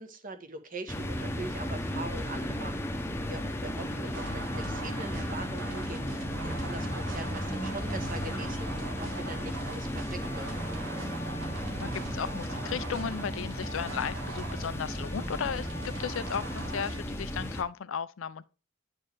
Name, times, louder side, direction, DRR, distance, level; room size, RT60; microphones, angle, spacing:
voice 1, 0.0-6.0 6.4-10.6, right 2 dB, 45° right, 1.1 m, -42 dB
sound 1, 0.9-17.6, equal, 10° left, 0.8 m, -35 dB
sound 2, 4.1-17.0, right 2 dB, 85° right, 1.6 m, -42 dB
sound 3, 6.6-13.6, equal, 15° right, 1.3 m, -51 dB
voice 2, 11.8-18.4, left 7 dB, 85° left, 0.5 m, -35 dB
9.7 x 4.4 x 3.4 m
head